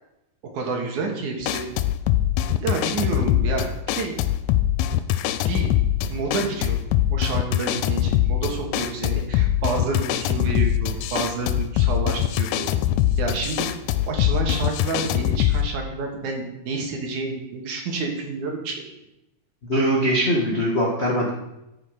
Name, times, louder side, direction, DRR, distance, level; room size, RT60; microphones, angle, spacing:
voice 1, 0.5-1.7 2.6-3.6 3.9-4.1 5.5-5.7 6.1-6.8 7.1-12.7 13.2-13.7 14.1-18.8, right 4 dB, 65° right, 1 dB, 3.0 m, -29 dB
sound 1, 1.4-15.7, left 12 dB, 90° left, 2.2 m, -23 dB
voice 2, 19.7-21.3, equal, 50° left, -4 dB, 0.7 m, -21 dB
13.0 x 6.4 x 5.1 m, 0.92 s
omnidirectional pair, 3.8 m